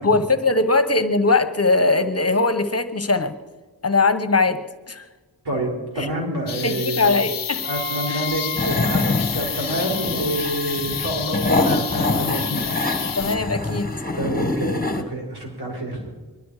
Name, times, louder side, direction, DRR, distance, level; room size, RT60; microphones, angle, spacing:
voice 1, 0.0-3.3 3.8-4.6 4.9-5.0 6.0-6.1 6.6-7.7 8.1-8.2 13.2-13.9, left 3 dB, 40° left, 10 dB, 1.2 m, -20 dB
voice 2, 5.4-7.3 7.6-9.0 9.3-12.6 14.1-16.0, right 1 dB, 75° right, -1 dB, 5.2 m, -27 dB
sound 1, 6.5-13.4, left 8 dB, 60° left, 0.7 m, -30 dB
Wind instrument woodwind instrument, 7.6-13.5, right 3 dB, 20° right, 4.7 m, -38 dB
sound 2, 8.5-15.0, left 2 dB, 25° left, 1.6 m, -25 dB
23.0 x 12.0 x 5.0 m, 1.3 s
cardioid pair, 50°, 39 cm